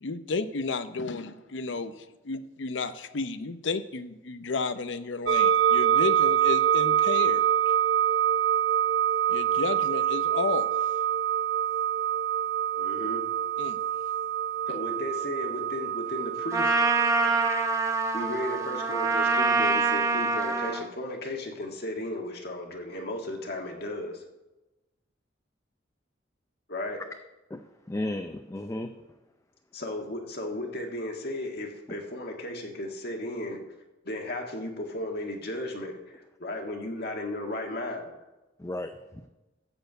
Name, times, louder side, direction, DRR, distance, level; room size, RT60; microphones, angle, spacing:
voice 1, 0.0-7.7 9.3-10.7 13.6-13.8, left 4 dB, 75° left, 11 dB, 0.7 m, -32 dB
sound 1, 5.3-19.5, right 9 dB, 80° right, 0.6 m, -26 dB
voice 2, 12.8-13.2 14.7-16.7 18.1-24.2 26.7-27.0 29.7-33.7 34.0-38.2, left 1 dB, 55° left, 2 dB, 1.7 m, -35 dB
Trumpet, 16.5-20.8, right 3 dB, 15° right, 0.9 m, -25 dB
voice 3, 27.5-28.9 31.9-32.0 38.6-39.3, left 1 dB, 15° left, 6 dB, 0.5 m, -35 dB
13.0 x 4.5 x 8.0 m, 1.1 s
head